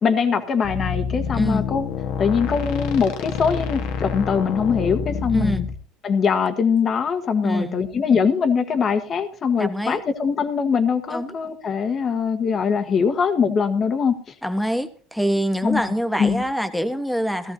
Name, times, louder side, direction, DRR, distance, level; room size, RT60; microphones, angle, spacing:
voice 1, 0.0-1.8 2.2-5.6 6.0-14.2 15.6-15.9 16.2-16.4, left 6 dB, 35° left, 1.5 m, -22 dB
sound 1, 0.6-5.7, left 6 dB, 65° left, 1.4 m, -27 dB
voice 2, 1.3-1.7 5.3-5.7 7.4-7.8 9.6-10.0 11.1-11.4 14.4-17.5, equal, ahead, 1.3 m, -25 dB
17.0 x 13.5 x 2.8 m
supercardioid pair, 110°, 0 cm